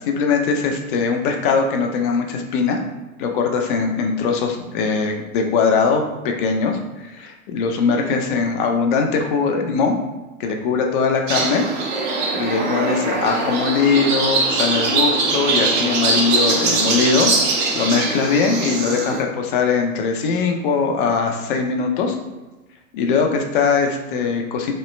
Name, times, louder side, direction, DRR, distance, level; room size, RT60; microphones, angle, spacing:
voice 1, 0.1-2.8 3.2-10.0 10.4-11.6 12.3-17.3 17.7-22.2 22.9-24.7, left 5 dB, 40° left, 3 dB, 0.5 m, -21 dB
sound 1, 11.3-19.2, right 3 dB, 35° right, 0.6 m, -21 dB
3.1 x 2.1 x 3.1 m, 1.1 s
hypercardioid pair, 110°, 43 cm